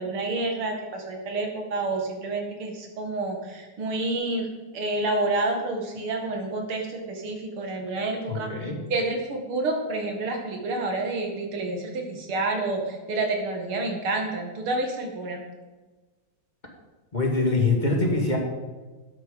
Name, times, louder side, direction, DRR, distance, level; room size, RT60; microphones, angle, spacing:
voice 1, 0.0-4.5 4.7-15.4, right 2 dB, 85° right, 2 dB, 2.8 m, -29 dB
voice 2, 8.3-8.8 17.1-18.4, left 3 dB, 20° left, -1 dB, 2.3 m, -24 dB
12.5 x 8.9 x 5.4 m, 1.3 s
omnidirectional pair, 2.3 m